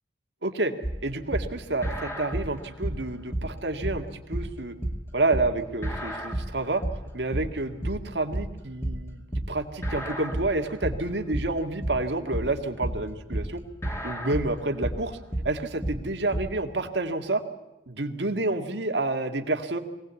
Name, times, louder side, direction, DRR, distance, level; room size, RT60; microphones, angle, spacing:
voice 1, 0.4-0.7 1.0-4.7 5.1-6.8 7.1-13.6 14.0-15.1 15.4-17.4 17.9-19.8, right 2 dB, 80° right, 5 dB, 1.9 m, -29 dB
sound 1, 0.8-16.6, right 1 dB, 15° left, 2.2 m, -32 dB
23.0 x 18.5 x 8.3 m, 1.0 s
head